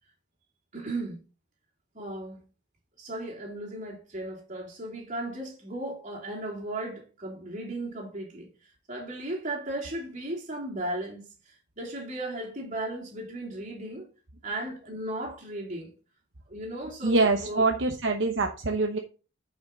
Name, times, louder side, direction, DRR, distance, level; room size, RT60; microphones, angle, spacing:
voice 1, 0.7-1.2 1.9-2.4 3.0-8.5 8.9-11.2 11.8-14.0 14.4-15.9 16.5-17.6, right 1 dB, 35° right, 3.1 m, -36 dB
voice 2, 17.0-19.0, right 3 dB, 60° right, 1.0 m, -24 dB
9.5 x 5.8 x 3.9 m
head